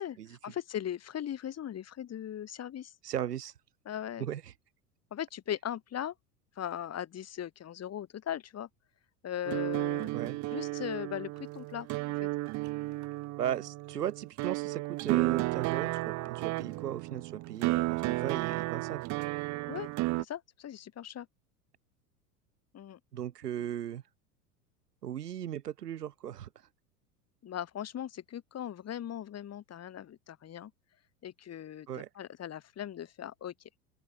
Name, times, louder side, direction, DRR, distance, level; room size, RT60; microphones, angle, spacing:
voice 1, 0.4-2.9 3.9-4.3 5.1-6.1 6.6-8.7 9.2-10.1 10.5-11.9 12.2-12.3 19.7-19.9 20.2-21.3 22.7-23.0 23.6-23.7 27.4-30.7 31.2-31.9 32.2-33.5, left 10 dB, 30° left, 4.3 m, -38 dB
voice 2, 3.0-3.5 4.2-4.5 10.1-10.4 13.4-19.0 23.1-24.0 25.0-26.5 31.9-32.1, right 10 dB, 85° right, 1.0 m, -37 dB
sound 1, 9.5-20.2, right 21 dB, 40° right, 0.8 m, -33 dB
open air
hypercardioid pair, 85°, 46 cm